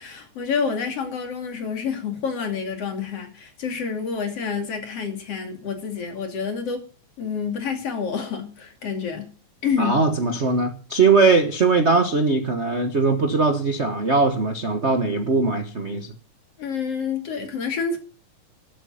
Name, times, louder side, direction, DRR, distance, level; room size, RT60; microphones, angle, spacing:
voice 1, 0.0-6.8 7.2-9.3 9.6-10.0 16.6-18.0, left 6 dB, 50° left, 3.5 m, -28 dB
voice 2, 9.8-16.1, right 4 dB, 50° right, 0.7 m, -20 dB
13.0 x 12.5 x 5.7 m
omnidirectional pair, 3.5 m